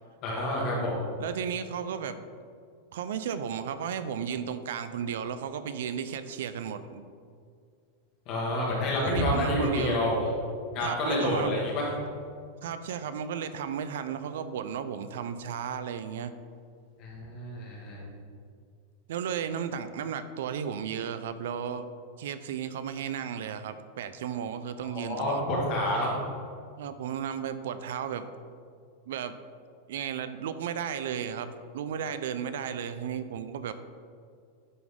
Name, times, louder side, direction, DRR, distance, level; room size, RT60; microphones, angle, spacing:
voice 1, 0.2-1.0 8.3-10.3 10.7-11.9 17.0-18.0 24.8-26.2, left 1 dB, 30° left, -4 dB, 1.8 m, -28 dB
voice 2, 1.2-2.2 2.9-7.0 9.0-10.0 10.8-11.6 12.6-16.4 19.1-21.9 22.2-25.4 26.8-28.3 29.1-29.4 29.9-33.7, right 8 dB, 70° right, 11 dB, 0.4 m, -34 dB
10.5 x 4.0 x 3.7 m, 2.2 s
supercardioid pair, 175°, 0 cm